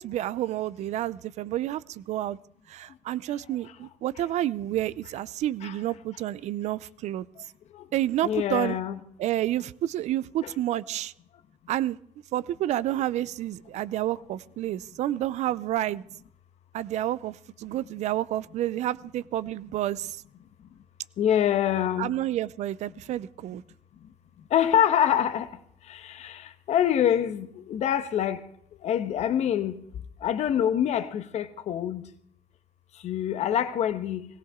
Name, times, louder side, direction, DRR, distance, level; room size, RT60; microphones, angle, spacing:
voice 1, 0.0-2.4 2.7-7.3 7.9-8.8 9.2-11.1 11.7-12.0 12.3-16.0 16.7-20.2 22.0-23.6, right 13 dB, 70° right, 0.5 m, -29 dB
voice 2, 8.2-9.0 10.4-10.5 21.2-22.1 24.5-25.5 25.9-26.4 26.7-28.4 28.8-29.8 30.2-32.0 33.0-34.3, left 10 dB, 65° left, 1.2 m, -25 dB
19.0 x 17.0 x 3.7 m
cardioid pair, 90°, 12 cm